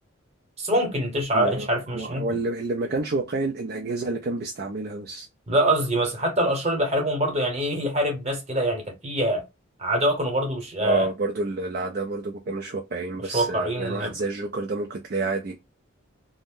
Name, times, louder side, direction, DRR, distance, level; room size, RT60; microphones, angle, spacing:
voice 1, 0.6-2.2 5.5-9.4 9.8-11.1 13.3-14.1, right 1 dB, 30° right, 0.9 m, -24 dB
voice 2, 1.3-5.3 10.8-15.6, right 3 dB, 45° right, 0.3 m, -29 dB
2.6 x 2.0 x 3.5 m
head